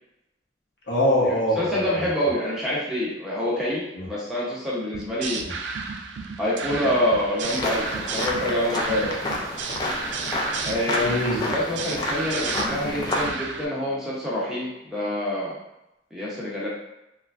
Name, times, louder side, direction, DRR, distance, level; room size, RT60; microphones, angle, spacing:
voice 1, 0.9-2.1 3.9-4.1 5.4-5.5 11.0-11.4, left 1 dB, 60° left, -6 dB, 0.9 m, -24 dB
voice 2, 1.6-5.4 6.4-9.2 10.6-15.5 16.1-16.7, left 1 dB, 5° right, -7 dB, 0.7 m, -26 dB
sound 1, 4.9-13.7, right 5 dB, 70° right, 0.3 m, -33 dB
sound 2, 7.4-13.3, left 1 dB, 20° left, 0.3 m, -29 dB
3.0 x 2.3 x 2.4 m, 0.90 s
head